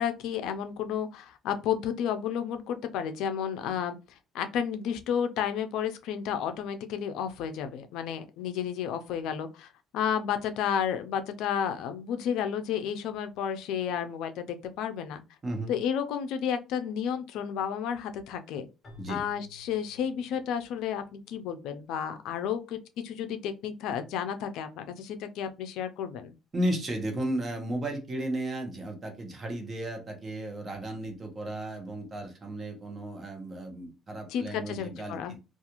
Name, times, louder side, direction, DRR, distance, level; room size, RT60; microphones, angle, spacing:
voice 1, 0.0-4.0 4.3-15.2 15.7-18.7 19.1-26.3 34.3-35.4, left 8 dB, 80° left, 8 dB, 0.3 m, -32 dB
voice 2, 15.4-15.7 19.0-19.2 26.5-35.4, right 1 dB, 25° right, 3 dB, 0.8 m, -34 dB
Keyboard (musical), 18.8-21.1, left 2 dB, 25° left, 1.0 m, -53 dB
2.4 x 2.3 x 2.9 m, 0.29 s
cardioid pair, 135°, 0 cm